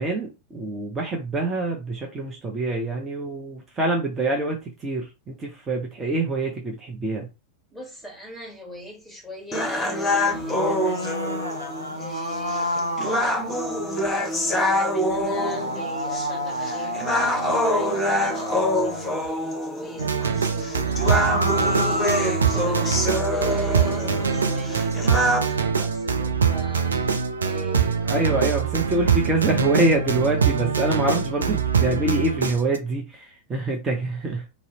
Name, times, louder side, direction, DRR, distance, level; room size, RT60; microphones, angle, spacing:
voice 1, 0.0-7.3 28.0-34.5, right 2 dB, 20° right, 0.6 m, -25 dB
voice 2, 7.7-11.2 11.9-13.4 14.2-28.1, equal, ahead, 1.2 m, -40 dB
sound 1, 9.5-25.5, left 1 dB, 15° left, 0.8 m, -26 dB
sound 2, 10.2-14.1 15.1-19.3 20.7-23.2, equal, 90° left, 0.4 m, -30 dB
sound 3, 20.0-32.8, right 6 dB, 75° right, 0.3 m, -24 dB
2.6 x 2.0 x 2.8 m
figure-of-eight pair, 90°, 0 cm